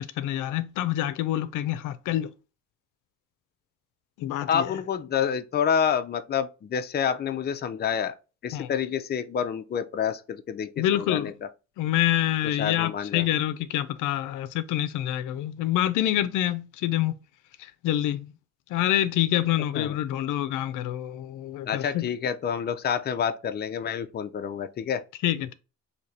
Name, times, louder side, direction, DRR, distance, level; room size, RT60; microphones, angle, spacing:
voice 1, 0.0-2.3 4.2-4.7 8.5-8.7 10.8-11.3 11.8-17.2 17.6-18.3 18.7-22.1 25.2-25.5, left 13 dB, 85° left, 0.5 m, -26 dB
voice 2, 4.5-8.1 8.4-11.3 12.4-13.3 19.7-20.0 21.6-25.0, left 7 dB, 35° left, 0.5 m, -28 dB
3.2 x 2.8 x 4.0 m
cardioid pair, 90°, 30 cm